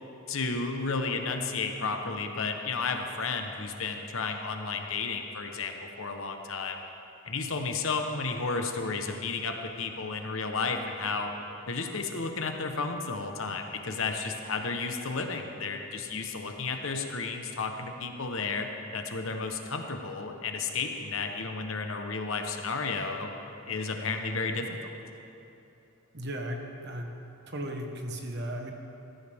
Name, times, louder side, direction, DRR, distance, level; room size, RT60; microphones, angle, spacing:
voice 1, 0.3-6.8 7.2-11.3 11.7-18.7 18.9-23.3 23.7-24.8, left 4 dB, 65° left, 4 dB, 1.1 m, -32 dB
voice 2, 26.1-27.1 27.5-28.7, right 1 dB, 50° right, 2 dB, 1.4 m, -36 dB
17.5 x 14.0 x 3.6 m, 2.9 s
head